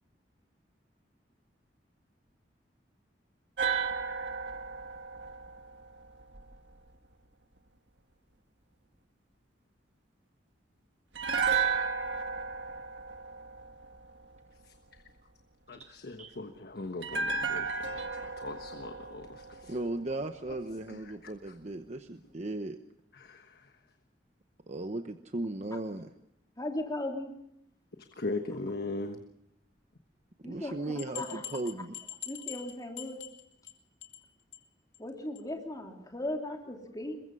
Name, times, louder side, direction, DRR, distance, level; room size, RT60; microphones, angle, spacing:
sound 1, 3.6-6.7 11.1-14.4 17.0-20.2 20.5-20.6, right 5 dB, 85° right, 1.6 m, -34 dB
voice 1, 14.5-15.0 15.7-19.8 20.5-20.6 20.9-21.6 23.1-23.9 28.1-29.2, left 2 dB, 60° left, 6 dB, 1.3 m, -40 dB
voice 2, 19.7-22.8 24.7-26.1 30.4-32.0, right 2 dB, 40° right, 7 dB, 1.0 m, -37 dB
voice 3, 26.6-27.3 30.4-30.7 31.1-31.4 32.2-33.2 35.0-37.2, left 1 dB, 20° left, 1 dB, 3.3 m, -37 dB
sound 2, 31.0-33.7 34.0-34.3 34.5-34.6 34.9-35.0 35.4-35.5, left 12 dB, 90° left, 2.4 m, -43 dB
23.0 x 21.5 x 5.5 m, 0.78 s
head